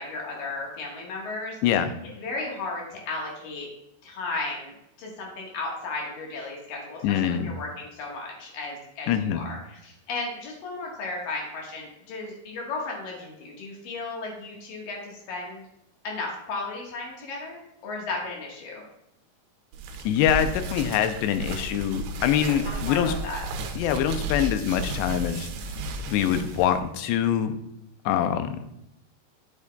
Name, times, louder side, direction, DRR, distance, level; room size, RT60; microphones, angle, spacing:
voice 1, 0.0-1.6 2.2-3.7 4.0-15.6 16.0-18.8 22.3-23.4, left 3 dB, 65° left, -2 dB, 2.9 m, -35 dB
voice 2, 1.6-1.9 7.0-7.5 9.1-9.4 20.1-23.1 23.8-25.5 26.1-27.5 28.1-28.6, left 10 dB, 85° left, 9 dB, 2.7 m, -24 dB
sound 1, 19.7-26.8, right 3 dB, 80° right, 2.6 m, -34 dB
9.5 x 7.3 x 2.3 m, 0.81 s
omnidirectional pair, 4.8 m